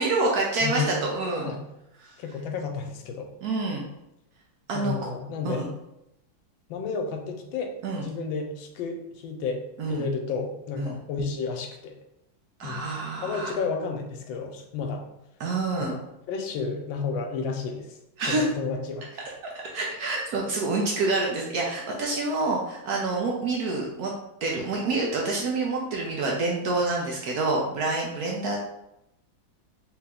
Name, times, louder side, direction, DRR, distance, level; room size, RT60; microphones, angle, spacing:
voice 1, 0.0-1.5 2.0-2.1 3.4-3.8 4.7-4.9 5.4-5.7 7.8-8.1 9.8-10.1 10.8-11.0 12.6-13.6 15.4-15.9 18.2-18.5 19.4-24.1 24.4-28.6, right 3 dB, 70° right, -1 dB, 0.9 m, -27 dB
voice 2, 0.6-1.0 1.4-1.6 2.2-3.3 4.7-5.6 6.7-7.7 8.0-9.6 9.9-11.9 12.6-12.8 13.2-15.0 15.8-16.0 16.3-17.9 18.3-19.2, left 5 dB, 90° left, 4 dB, 1.4 m, -31 dB
3.3 x 2.9 x 3.5 m, 0.84 s
omnidirectional pair, 2.1 m